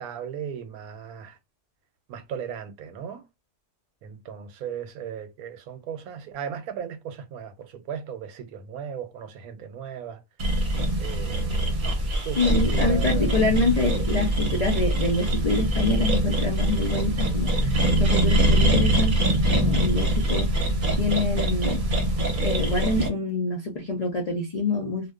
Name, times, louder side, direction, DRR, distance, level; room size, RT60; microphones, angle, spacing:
voice 1, 0.0-1.4 2.1-3.2 4.0-10.2 11.0-13.3 13.9-14.1, right 8 dB, 85° right, 1.1 m, -37 dB
sound 1, 10.4-23.1, right 1 dB, 45° right, 0.8 m, -23 dB
voice 2, 12.4-21.8 22.4-25.1, left 3 dB, 70° left, 0.3 m, -26 dB
2.6 x 2.1 x 2.3 m
omnidirectional pair, 1.5 m